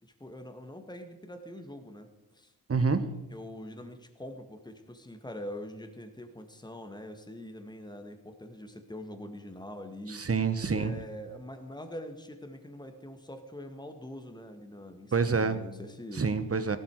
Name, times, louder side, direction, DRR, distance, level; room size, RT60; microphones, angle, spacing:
voice 1, 0.0-2.5 3.3-10.3 10.7-16.2, left 1 dB, 10° left, 6 dB, 1.9 m, -44 dB
voice 2, 2.7-3.1 10.1-10.9 15.1-15.6 16.2-16.8, right 4 dB, 40° right, 11 dB, 1.4 m, -27 dB
15.0 x 12.5 x 4.9 m, 1.0 s
cardioid pair, 55°, 37 cm